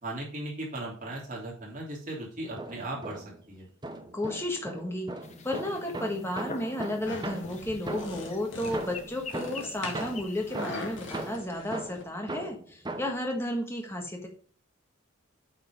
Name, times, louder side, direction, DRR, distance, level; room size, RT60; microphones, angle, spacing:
voice 1, 0.0-3.7, right 1 dB, 35° right, -4 dB, 3.3 m, -37 dB
sound 1, 2.4-3.5 3.8-8.3 8.7-13.3, right 2 dB, 20° right, 0.8 m, -39 dB
voice 2, 4.1-5.1 5.4-14.3, left 1 dB, 10° left, 2 dB, 1.5 m, -33 dB
sound 2, 5.2-11.4, left 4 dB, 30° left, 0.8 m, -45 dB
sound 3, 7.0-12.0, left 2 dB, 55° left, 2.0 m, -41 dB
8.9 x 4.4 x 5.3 m, 0.44 s
head